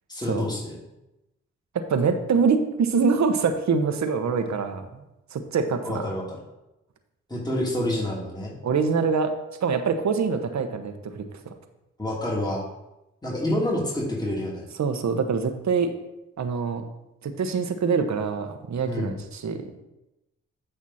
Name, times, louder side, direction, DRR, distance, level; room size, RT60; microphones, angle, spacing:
voice 1, 0.1-0.8 5.8-6.4 7.3-8.5 12.0-12.6 13.2-14.6 18.9-19.1, left 1 dB, 15° left, -4 dB, 3.1 m, -28 dB
voice 2, 1.9-4.9 5.3-6.0 8.6-9.3 9.6-11.2 14.8-15.9 16.4-16.8 17.2-19.6, right 5 dB, 65° right, 7 dB, 1.1 m, -24 dB
8.8 x 5.8 x 4.3 m, 0.93 s
supercardioid pair, 45°, 31 cm